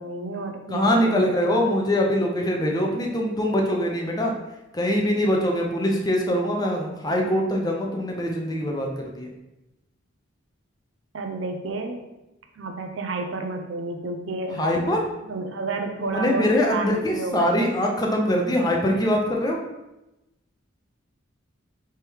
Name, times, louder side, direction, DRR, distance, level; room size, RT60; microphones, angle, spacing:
voice 1, 0.0-1.3 11.1-12.0 12.6-14.9 15.2-17.7, right 3 dB, 75° right, 4 dB, 0.6 m, -31 dB
voice 2, 0.7-4.3 4.7-9.3 14.6-15.0 16.1-19.6, left 1 dB, 20° left, 0 dB, 0.6 m, -23 dB
3.5 x 3.2 x 4.5 m, 0.95 s
head